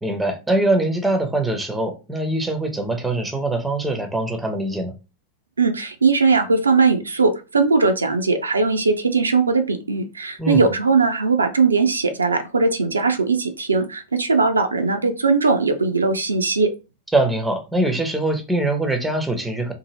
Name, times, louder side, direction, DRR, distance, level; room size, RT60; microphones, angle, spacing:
voice 1, 0.0-4.9 10.4-10.7 17.1-19.7, right 2 dB, 5° right, 0.6 m, -22 dB
voice 2, 5.6-16.7, right 4 dB, 75° right, 0.4 m, -19 dB
2.7 x 2.6 x 2.8 m
figure-of-eight pair, 90°, 0 cm